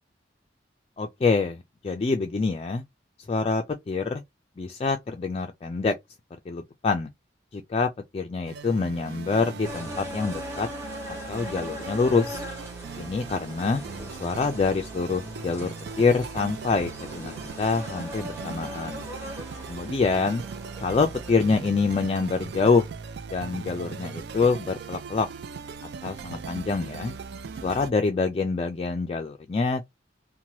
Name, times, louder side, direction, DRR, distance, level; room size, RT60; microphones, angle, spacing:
voice 1, 1.0-2.8 3.3-4.2 4.6-5.9 6.5-7.1 7.5-10.7 11.1-12.5 13.0-13.8 14.2-19.0 19.7-20.4 20.8-22.9 23.3-25.3 26.0-27.1 27.6-29.8, left 4 dB, 30° left, 0.3 m, -26 dB
sound 1, 8.5-27.9, right 5 dB, 60° right, 0.3 m, -39 dB
sound 2, 9.6-21.3, equal, 15° right, 1.2 m, -40 dB
2.8 x 2.2 x 3.1 m
head